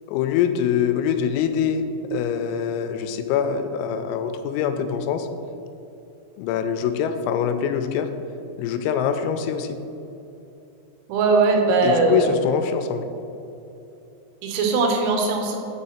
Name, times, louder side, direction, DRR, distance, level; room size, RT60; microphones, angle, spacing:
voice 1, 0.1-1.9 2.1-5.3 6.4-8.1 8.6-9.8 11.8-13.1, left 8 dB, 90° left, 9 dB, 3.2 m, -24 dB
voice 2, 11.1-12.3 14.4-15.6, right 3 dB, 85° right, 2 dB, 3.5 m, -20 dB
6.8 x 5.6 x 4.2 m, 2.8 s
omnidirectional pair, 5.9 m